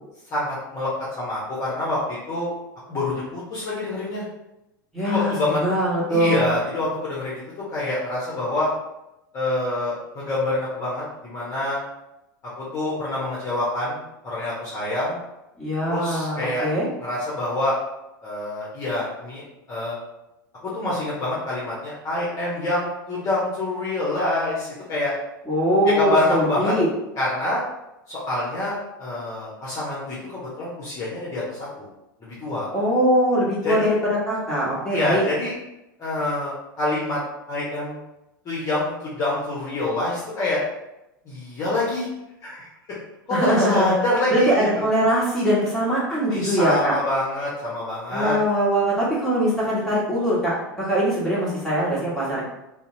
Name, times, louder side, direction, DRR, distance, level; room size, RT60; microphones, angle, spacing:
voice 1, 0.3-0.9 1.2-2.5 2.9-4.2 5.0-5.6 6.1-7.4 7.7-8.7 9.3-11.8 12.6-15.2 15.9-16.7 17.0-17.7 18.2-19.4 19.7-19.9 20.6-25.1 25.8-26.7 27.2-27.6 28.1-31.9 32.2-32.7 33.6-33.9 34.9-35.5 36.0-37.2 37.5-38.0 38.4-40.6 41.3-42.1 42.4-43.0 43.3-44.5 46.3-48.4, left 2 dB, 30° left, -7 dB, 0.8 m, -26 dB
voice 2, 4.9-5.3 5.6-6.5 15.6-16.9 25.5-26.9 32.7-35.2 43.3-43.9 44.3-46.9 48.1-52.4, equal, 5° left, -9 dB, 1.2 m, -22 dB
2.7 x 2.0 x 2.7 m, 0.91 s
figure-of-eight pair, 85°, 11 cm